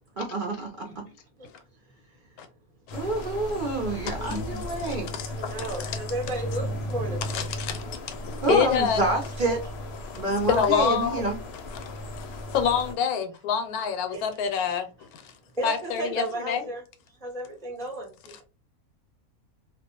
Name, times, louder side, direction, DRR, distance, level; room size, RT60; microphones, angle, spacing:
voice 1, 0.2-1.0 2.9-5.1 8.4-9.6 10.1-11.4, right 2 dB, 65° right, 0.5 m, -27 dB
voice 2, 0.8-1.1 1.4-1.5 4.1-4.4 5.2-7.2 7.8-8.4 14.1-14.4 15.0-15.1 15.5-16.8 17.1-18.4, right 2 dB, 5° left, 0.3 m, -35 dB
sound 1, 2.9-12.9, left 1 dB, 60° left, 0.7 m, -35 dB
voice 3, 5.1-5.9 7.3-9.0 10.5-11.3 11.7-12.0 12.5-14.9 15.6-16.6, left 7 dB, 85° left, 1.1 m, -27 dB
2.3 x 2.2 x 2.8 m
omnidirectional pair, 1.5 m